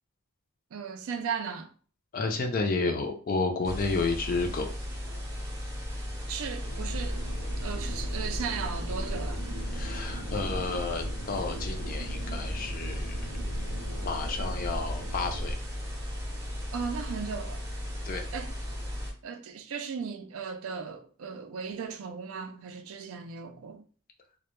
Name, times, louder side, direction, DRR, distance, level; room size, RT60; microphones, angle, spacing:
voice 1, 0.7-1.7 6.3-7.2 7.6-9.4 16.7-17.6 18.3-18.5 19.2-23.9, right 6 dB, 70° right, 0.4 m, -36 dB
voice 2, 2.1-4.7 9.7-13.3 14.0-15.6 18.0-18.3, left 3 dB, 40° left, 0.4 m, -31 dB
sound 1, 3.6-19.1, equal, 15° right, 0.5 m, -36 dB
sound 2, 6.6-15.5, equal, 75° left, 0.8 m, -36 dB
2.1 x 2.1 x 2.9 m
head